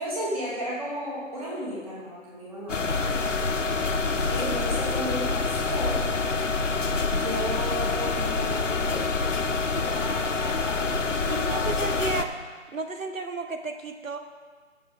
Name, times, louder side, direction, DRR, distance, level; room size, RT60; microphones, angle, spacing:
voice 1, 0.0-2.8 4.3-6.0 7.0-12.0, equal, 30° right, -6 dB, 2.5 m, -35 dB
sound 1, 2.7-12.2, left 4 dB, 70° left, 0.9 m, -26 dB
voice 2, 11.3-12.4 12.7-14.2, right 3 dB, 85° right, 6 dB, 1.2 m, -32 dB
16.0 x 7.1 x 3.7 m, 1.5 s
figure-of-eight pair, 170°, 39 cm